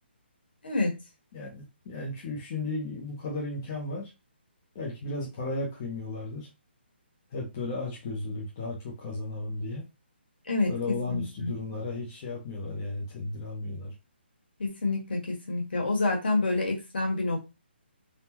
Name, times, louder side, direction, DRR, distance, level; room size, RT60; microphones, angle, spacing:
voice 1, 0.6-0.9 10.5-10.7 11.1-11.5 14.6-17.4, left 2 dB, 60° left, 1.3 m, -28 dB
voice 2, 1.3-4.1 4.7-6.5 7.3-9.8 10.7-13.9, left 2 dB, 15° left, 0.4 m, -34 dB
3.5 x 2.0 x 2.8 m
hypercardioid pair, 180°, 6 cm